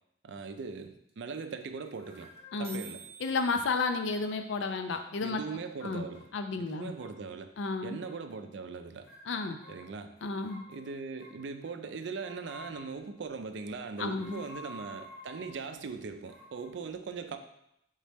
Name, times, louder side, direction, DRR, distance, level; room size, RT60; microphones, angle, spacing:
voice 1, 0.2-2.3 2.6-3.0 5.2-6.3 6.6-7.5 7.8-9.1 9.7-10.1 10.7-17.4, right 4 dB, 65° right, 7 dB, 0.4 m, -40 dB
sound 1, 0.6-0.7 0.8-0.9 1.1-1.4 1.6-1.7 1.9-2.1 2.4-2.5 2.6-6.6, right 6 dB, 35° right, 0.7 m, -53 dB
sound 2, 1.9-3.0 4.1-5.1 5.4-6.4 6.7-7.3 8.0-8.5 9.0-11.8 12.2-13.1 13.9-15.7 16.2-16.7, left 1 dB, 45° left, 1.6 m, -52 dB
voice 2, 2.5-2.8 3.2-5.4 5.8-6.1 6.3-6.9 7.6-8.0 9.3-9.6 10.2-10.6 14.0-14.5, left 3 dB, 75° left, 7 dB, 0.4 m, -32 dB
4.1 x 3.6 x 3.4 m, 0.78 s
head